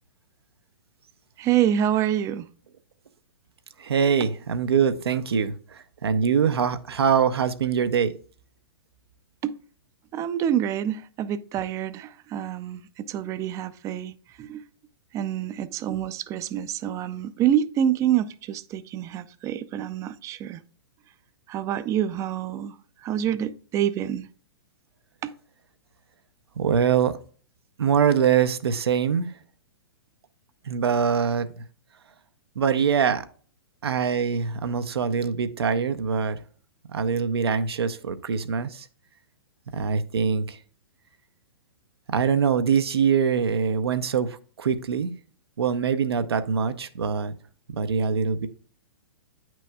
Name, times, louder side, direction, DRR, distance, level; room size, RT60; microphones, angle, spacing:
voice 1, 1.4-2.5 9.4-9.5 10.1-14.6 15.1-20.6 21.5-22.8 23.0-24.3 25.2-25.3, right 10 dB, 25° right, 0.4 m, -27 dB
voice 2, 3.8-8.1 26.6-27.1 27.8-29.3 30.7-31.5 32.6-33.2 33.8-36.4 36.9-38.9 39.7-40.6 42.1-45.1 45.6-47.3 47.7-48.5, right 6 dB, 80° right, 0.7 m, -23 dB
9.1 x 6.0 x 2.3 m
hypercardioid pair, 125°, 13 cm